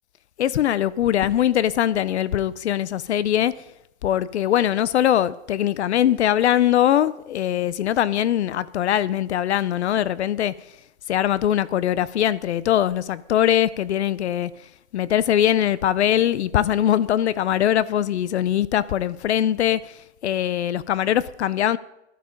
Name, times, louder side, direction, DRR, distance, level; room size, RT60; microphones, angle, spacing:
voice 1, 0.4-3.5 4.0-10.5 11.1-14.5 14.9-19.9 20.2-21.8, left 11 dB, 70° left, 0.6 m, -21 dB
12.5 x 11.0 x 5.1 m
hypercardioid pair, 180°, 36 cm